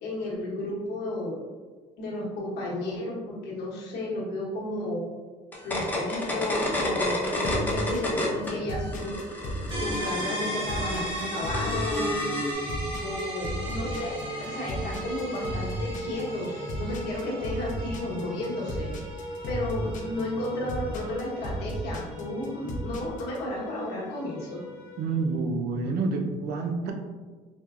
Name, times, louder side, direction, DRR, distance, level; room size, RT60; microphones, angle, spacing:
voice 1, 0.0-1.4 2.0-5.0 5.6-9.2 9.7-12.3 13.0-14.1 14.5-18.9 19.5-24.6, left 1 dB, 80° left, -4 dB, 1.0 m, -33 dB
sound 1, 5.5-8.5 8.8-12.5, left 1 dB, 10° left, 0.8 m, -31 dB
sound 2, 7.4-23.4, equal, 50° left, 0.6 m, -35 dB
sound 3, 9.7-25.3, equal, 30° right, 1.1 m, -36 dB
voice 2, 25.0-26.9, right 3 dB, 70° right, 3 dB, 0.5 m, -28 dB
4.3 x 2.1 x 2.4 m, 1.4 s
cardioid pair, 110°, 17 cm